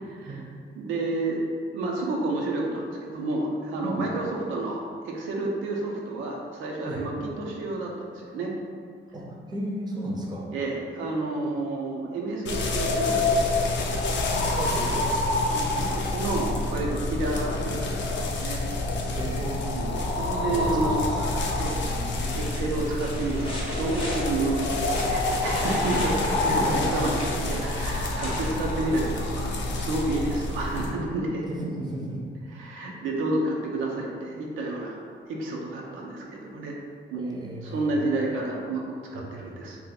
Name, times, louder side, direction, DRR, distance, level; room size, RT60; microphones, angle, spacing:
voice 1, 0.8-1.4 1.7-8.5 10.5-14.1 15.5-18.6 19.7-21.0 21.6-21.8 22.3-31.4 32.5-35.0 35.3-36.8 37.1-37.3 37.6-39.8, right 2 dB, 80° right, -1 dB, 0.5 m, -30 dB
voice 2, 9.1-10.4 11.4-11.5 14.6-15.2 19.1-19.6 20.5-21.1 21.4-21.6 22.0-22.4 25.8-26.8 31.5-32.2 37.1-38.1 39.1-39.4, right 1 dB, 20° right, -2 dB, 0.6 m, -34 dB
sound 1, 12.5-30.9, left 2 dB, 65° left, 0.5 m, -27 dB
sound 2, 22.2-29.2 30.9-31.0, left 1 dB, 25° left, 0.9 m, -38 dB
2.8 x 2.2 x 3.9 m, 2.1 s
cardioid pair, 90°, 20 cm